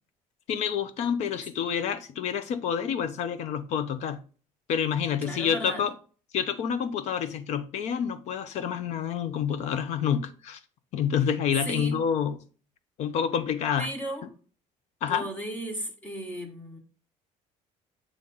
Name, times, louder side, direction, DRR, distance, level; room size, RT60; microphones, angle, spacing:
voice 1, 0.5-4.2 4.7-5.9 6.3-10.6 10.9-12.4 13.0-13.9 15.0-15.3, left 8 dB, 60° left, 0.7 m, -28 dB
voice 2, 5.2-5.8 11.6-12.0 13.8-14.3 15.1-16.8, right 1 dB, 10° left, 1.2 m, -35 dB
8.6 x 3.2 x 3.9 m
cardioid pair, 165°, 13 cm